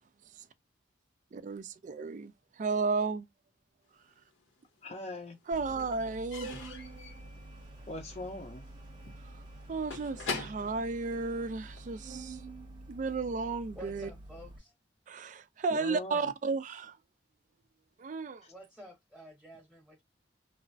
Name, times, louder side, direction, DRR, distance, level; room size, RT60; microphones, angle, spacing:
voice 1, 1.3-3.3 5.5-6.5 9.7-12.4 12.9-14.1 15.1-17.0 18.0-18.4, right 4 dB, 40° right, 0.3 m, -33 dB
Slam / Squeak / Wood, 4.1-4.9 5.1-11.9, left 4 dB, 85° left, 1.0 m, -44 dB
voice 2, 4.8-5.4 7.9-8.6 15.7-16.3 18.4-18.5, left 2 dB, 35° left, 0.5 m, -41 dB
Organ, 5.5-14.6, right 2 dB, 25° right, 0.7 m, -48 dB
voice 3, 13.7-14.7 18.5-20.0, equal, 5° right, 1.0 m, -50 dB
3.1 x 2.0 x 2.5 m
head